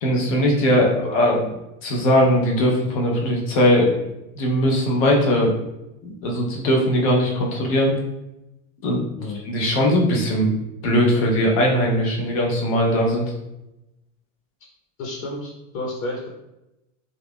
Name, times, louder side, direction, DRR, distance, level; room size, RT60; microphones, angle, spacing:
voice 1, 0.0-1.5 1.8-3.9 4.4-5.5 6.0-7.9 8.8-9.1 9.5-10.5 10.8-13.2, equal, 25° left, -1 dB, 0.4 m, -19 dB
voice 2, 15.0-16.3, left 2 dB, 80° left, -1 dB, 0.9 m, -31 dB
3.1 x 2.4 x 3.4 m, 0.91 s
supercardioid pair, 170°, 40 cm